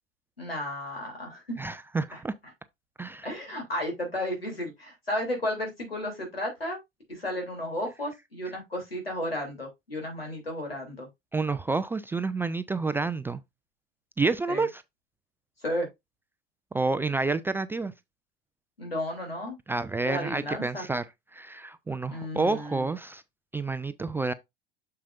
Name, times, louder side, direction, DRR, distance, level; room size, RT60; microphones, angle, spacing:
voice 1, 0.4-1.6 2.1-2.2 3.2-6.8 7.1-11.1 14.5-14.6 15.6-15.9 18.8-19.6 20.0-20.9 22.1-22.9, left 1 dB, 85° left, 3.2 m, -33 dB
voice 2, 1.6-2.3 3.0-3.3 11.3-13.4 14.2-14.8 16.7-17.9 19.7-21.0 21.3-23.2 23.5-24.3, right 3 dB, 10° right, 0.3 m, -29 dB
7.3 x 6.7 x 2.5 m
figure-of-eight pair, 80°, 29 cm